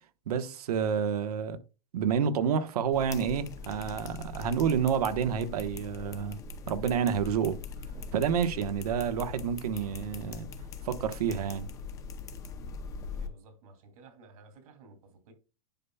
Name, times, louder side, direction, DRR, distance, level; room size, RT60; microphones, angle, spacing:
voice 1, 0.3-1.6 1.9-6.4 6.7-7.6 8.1-10.5 10.8-11.7, right 7 dB, 90° right, 1.2 m, -29 dB
sound 1, 2.9-13.3, left 4 dB, 15° left, 0.6 m, -41 dB
voice 2, 13.1-15.3, right 3 dB, 65° right, 2.6 m, -55 dB
10.5 x 5.5 x 2.3 m
supercardioid pair, 165°, 19 cm